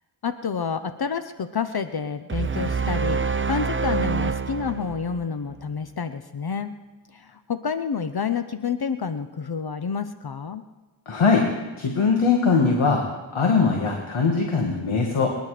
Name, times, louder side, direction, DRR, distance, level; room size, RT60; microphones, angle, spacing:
voice 1, 0.2-6.7 7.1-10.6, left 6 dB, 50° left, 10 dB, 0.8 m, -29 dB
sound 1, 2.3-5.6, right 5 dB, 25° right, 0.7 m, -26 dB
voice 2, 11.1-11.5 11.8-13.0 13.3-15.4, left 4 dB, 85° left, 1 dB, 2.0 m, -21 dB
28.0 x 10.5 x 5.0 m, 1.2 s
cardioid pair, 55°, 48 cm